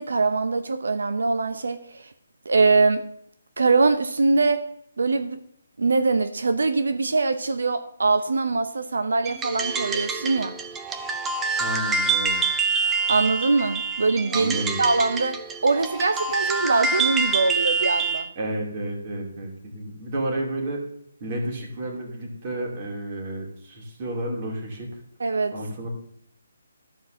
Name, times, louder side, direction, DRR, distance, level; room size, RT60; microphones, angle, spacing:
voice 1, 0.0-2.1 2.5-3.0 3.6-4.6 5.0-5.4 5.8-10.6 13.1-18.3 25.2-25.5, right 3 dB, 80° right, 9 dB, 0.8 m, -23 dB
sound 1, 9.3-18.3, right 4 dB, 10° right, 0.5 m, -26 dB
voice 2, 11.6-12.4 14.3-14.8 18.4-20.8 21.2-24.9 25.5-25.9, right 1 dB, 25° right, 0 dB, 2.5 m, -31 dB
13.5 x 4.6 x 6.4 m, 0.71 s
hypercardioid pair, 170°, 0 cm